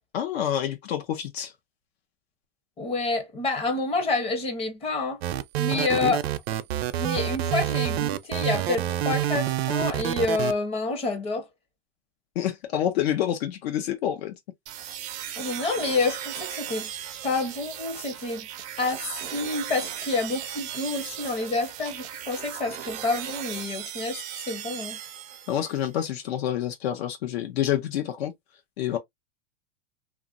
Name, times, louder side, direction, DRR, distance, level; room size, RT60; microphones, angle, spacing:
voice 1, 0.1-1.5 5.7-6.1 12.4-14.3 25.5-28.3 28.8-29.0, left 11 dB, 80° left, 0.7 m, -28 dB
voice 2, 2.8-5.2 5.6-6.2 7.0-11.5 15.4-16.9 17.2-18.5 18.8-25.0, left 3 dB, 20° left, 0.6 m, -28 dB
sound 1, 5.2-10.5, right 12 dB, 75° right, 0.5 m, -27 dB
sound 2, 14.7-25.8, right 10 dB, 25° right, 0.3 m, -37 dB
3.0 x 2.4 x 2.4 m
supercardioid pair, 150°, 31 cm